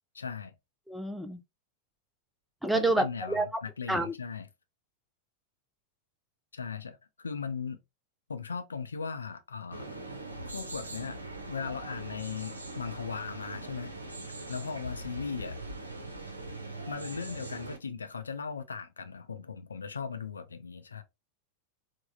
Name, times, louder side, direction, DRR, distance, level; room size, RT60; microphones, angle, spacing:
voice 1, 0.1-0.5 2.7-4.5 6.5-7.8 8.3-9.8 10.5-11.2 11.5-13.9 14.5-15.6 16.9-21.0, left 6 dB, 75° left, 0.4 m, -38 dB
voice 2, 0.9-1.4 2.6-3.5 3.9-4.1, right 2 dB, ahead, 0.4 m, -28 dB
sound 1, 9.7-17.8, right 2 dB, 80° right, 0.6 m, -41 dB
3.3 x 2.0 x 2.6 m
figure-of-eight pair, 90°, 0 cm